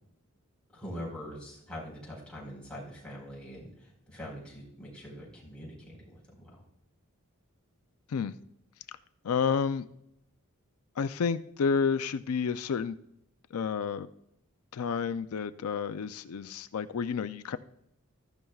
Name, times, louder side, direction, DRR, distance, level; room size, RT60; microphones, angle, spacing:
voice 1, 0.7-6.6, equal, 5° left, -5 dB, 4.2 m, -43 dB
voice 2, 9.2-9.9 11.0-13.0 13.5-14.1 14.7-17.6, left 6 dB, 85° left, 12 dB, 0.4 m, -30 dB
14.0 x 12.0 x 2.3 m, 0.77 s
head